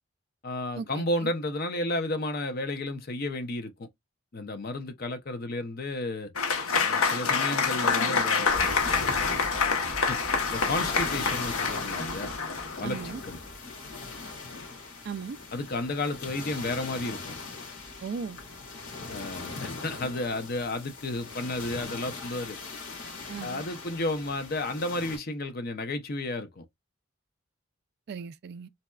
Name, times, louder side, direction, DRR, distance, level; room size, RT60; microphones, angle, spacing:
voice 1, 0.4-3.9 4.3-6.3 6.8-9.1 9.7-10.2 10.5-12.3 12.8-13.0 13.2-13.4 15.5-17.4 19.1-22.6 23.4-26.6, left 2 dB, 45° left, 0.5 m, -32 dB
Applause / Crowd, 6.4-13.2, left 5 dB, 90° left, 1.0 m, -27 dB
sound 1, 8.5-25.2, left 3 dB, 70° left, 2.3 m, -39 dB
voice 2, 12.8-13.2 15.0-15.4 18.0-18.4 23.3-23.7 28.1-28.7, right 5 dB, 50° right, 0.3 m, -37 dB
4.0 x 2.3 x 2.3 m
head